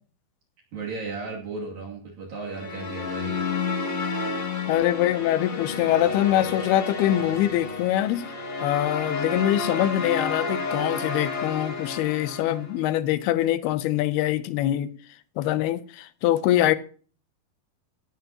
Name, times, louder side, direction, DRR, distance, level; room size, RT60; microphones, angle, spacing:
voice 1, 0.7-3.4, right 3 dB, 60° right, 4.2 m, -35 dB
sound 1, 2.4-12.8, left 4 dB, 35° left, 2.2 m, -31 dB
voice 2, 4.7-8.2 8.6-14.9 15.4-16.8, left 13 dB, 80° left, 2.7 m, -24 dB
17.5 x 13.0 x 2.9 m
omnidirectional pair, 4.5 m